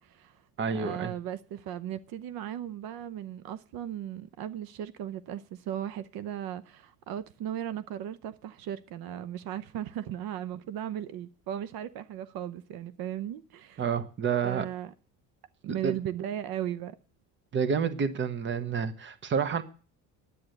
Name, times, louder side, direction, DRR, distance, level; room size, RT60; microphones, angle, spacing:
voice 1, 0.0-0.4 0.7-13.8 14.4-14.9 15.6-17.0, right 10 dB, 70° right, 0.8 m, -37 dB
voice 2, 0.6-1.1 13.8-14.6 15.7-15.9 17.5-19.6, right 6 dB, 30° right, 1.1 m, -29 dB
11.0 x 8.6 x 7.8 m
cardioid pair, 165°, 37 cm